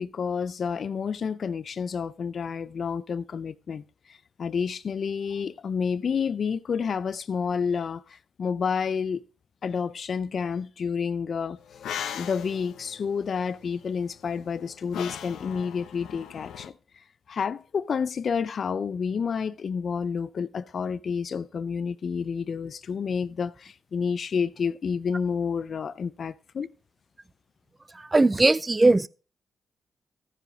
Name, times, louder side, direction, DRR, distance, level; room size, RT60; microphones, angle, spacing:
voice 1, 0.0-9.2 9.6-11.9 12.1-16.7 17.3-26.7, left 6 dB, 60° left, 0.4 m, -29 dB
sound 1, 11.6-16.7, left 9 dB, 90° left, 0.7 m, -39 dB
voice 2, 28.1-29.1, right 2 dB, 25° right, 0.4 m, -19 dB
14.5 x 4.9 x 5.0 m
cardioid pair, 75°, 0 cm